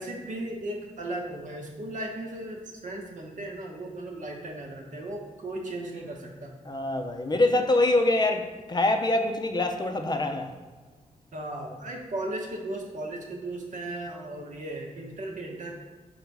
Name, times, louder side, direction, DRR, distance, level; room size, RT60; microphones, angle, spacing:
voice 1, 0.0-6.5 11.3-15.7, right 1 dB, 75° right, 0 dB, 1.0 m, -36 dB
voice 2, 6.6-10.5, left 2 dB, 35° left, 5 dB, 0.5 m, -25 dB
5.2 x 3.9 x 4.6 m, 1.3 s
wide cardioid pair, 120°, 13 cm